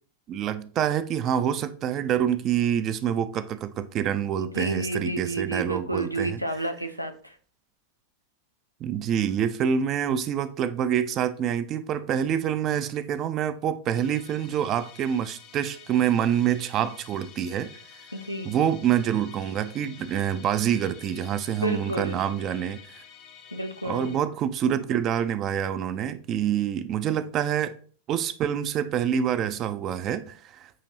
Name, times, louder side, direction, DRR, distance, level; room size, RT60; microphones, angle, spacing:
voice 1, 0.3-6.4 8.8-17.7 18.4-23.0 23.8-27.8 28.1-30.7, right 9 dB, 35° right, 0.4 m, -26 dB
voice 2, 4.4-7.4 18.1-18.5 21.6-22.2 23.5-24.1, right 1 dB, 90° left, 0.5 m, -31 dB
Musical instrument, 13.9-24.2, left 8 dB, 35° left, 0.5 m, -49 dB
6.3 x 2.8 x 2.7 m
figure-of-eight pair, 90°, 0 cm